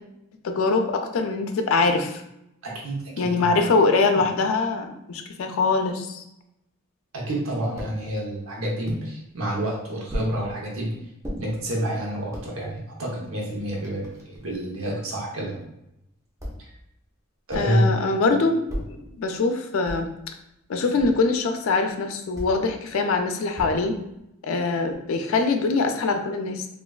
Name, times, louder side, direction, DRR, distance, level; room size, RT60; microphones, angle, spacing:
voice 1, 0.4-2.2 3.2-6.2 17.5-18.6 19.2-20.1 20.7-23.9 24.4-26.7, left 3 dB, 80° left, 5 dB, 0.4 m, -23 dB
voice 2, 2.6-3.6 7.1-10.9 11.3-15.6 17.5-18.0, equal, 90° right, -2 dB, 0.8 m, -28 dB
sound 1, 7.8-8.0 8.9-9.1 10.1-10.4 11.2-11.4 12.1-12.5 13.2-13.3 13.6-14.6 16.4-16.8 17.5-17.8 18.7-19.0 19.9-20.2 21.0-21.3 22.3-22.6 23.6-24.0, equal, 15° right, 0.5 m, -34 dB
3.2 x 2.4 x 2.2 m, 0.83 s
head